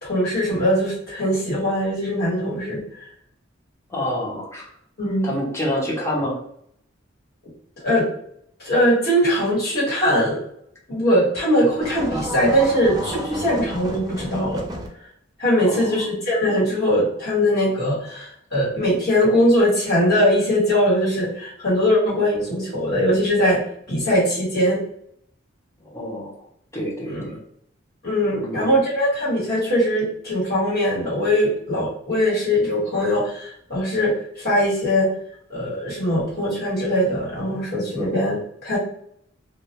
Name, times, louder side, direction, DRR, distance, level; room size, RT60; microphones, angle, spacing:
voice 1, 0.0-3.1 5.0-5.3 7.8-8.1 8.6-10.4 10.9-14.6 15.4-23.6 23.9-24.8 27.1-27.2 28.0-35.1 35.5-38.8, equal, 55° left, -8 dB, 1.2 m, -21 dB
voice 2, 3.9-4.7 5.2-6.4 15.7-16.0 25.8-26.5 26.7-27.4 28.3-28.8, left 1 dB, 15° left, -4 dB, 0.7 m, -28 dB
sound 1, 11.8-14.9, equal, 20° right, 0.3 m, -31 dB
2.3 x 2.1 x 2.8 m, 0.69 s
head